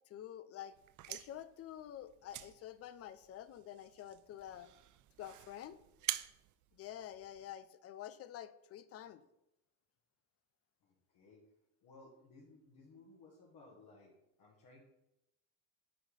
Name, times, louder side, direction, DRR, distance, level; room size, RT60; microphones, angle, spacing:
voice 1, 0.1-0.7 1.1-4.7 5.2-5.8 6.7-9.2, left 11 dB, 35° left, 14 dB, 0.5 m, -48 dB
sound 1, 0.7-7.6, right 15 dB, 45° right, 0.4 m, -47 dB
voice 2, 10.8-11.4 11.8-14.1 14.4-14.8, left 3 dB, 55° left, -4 dB, 1.6 m, -60 dB
9.0 x 3.1 x 3.9 m, 0.86 s
supercardioid pair, 85°, 42 cm